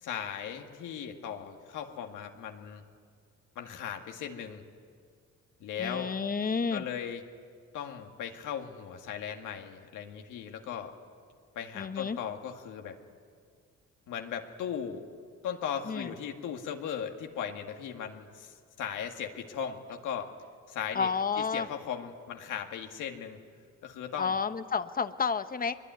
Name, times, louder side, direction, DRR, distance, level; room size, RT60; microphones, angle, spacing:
voice 1, 0.0-2.8 3.6-4.6 5.6-6.1 6.7-7.2 7.7-10.9 11.5-13.0 14.1-15.0 15.4-20.3 20.7-21.1 21.4-23.4 23.8-24.4, left 8 dB, 85° left, 3 dB, 2.1 m, -37 dB
voice 2, 5.8-6.8 11.7-12.2 15.9-16.1 20.9-21.7 24.2-25.8, left 5 dB, 30° left, 11 dB, 1.1 m, -30 dB
23.0 x 22.0 x 9.5 m, 2.1 s
cardioid pair, 90°, 30 cm